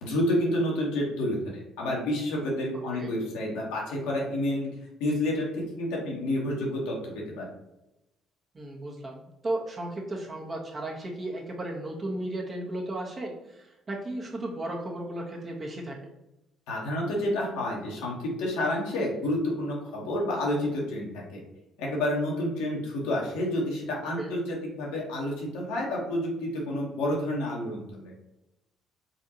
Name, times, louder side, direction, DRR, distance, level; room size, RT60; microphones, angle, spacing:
voice 1, 0.0-4.7 5.0-7.5 16.7-21.4 21.8-28.1, left 1 dB, 75° left, -3 dB, 1.2 m, -29 dB
voice 2, 8.5-16.1 24.2-24.3, right 1 dB, 35° right, -2 dB, 1.3 m, -35 dB
4.1 x 3.7 x 2.9 m, 0.92 s
hypercardioid pair, 50°, 0 cm